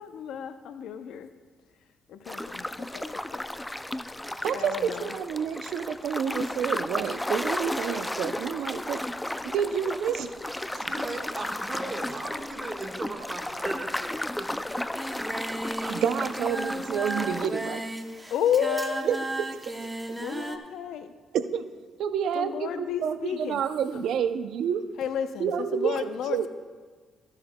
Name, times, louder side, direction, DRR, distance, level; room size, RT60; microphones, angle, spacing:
voice 1, 0.0-1.3 2.1-3.5 4.5-5.2 18.3-19.1 20.1-21.1 22.3-23.6 23.9-24.0 25.0-26.5, left 8 dB, 80° left, 10 dB, 0.6 m, -32 dB
sound 1, 2.2-17.5, left 1 dB, 10° left, 0.3 m, -34 dB
voice 2, 4.4-9.0 9.4-10.3 10.7-11.0 15.9-17.8 19.1-19.2 19.5-20.2 21.3-21.7 22.0-24.8 25.4-26.5, right 8 dB, 75° right, 11 dB, 0.5 m, -29 dB
sound 2, 6.4-15.4, left 1 dB, 45° left, 2.6 m, -58 dB
voice 3, 10.7-14.5 14.7-14.8 15.1-15.9, right 2 dB, 30° right, 2 dB, 1.4 m, -38 dB
Singing, 15.0-20.6, right 1 dB, 10° right, 0.8 m, -34 dB
14.5 x 10.5 x 2.2 m, 1.5 s
cardioid pair, 90°, 0 cm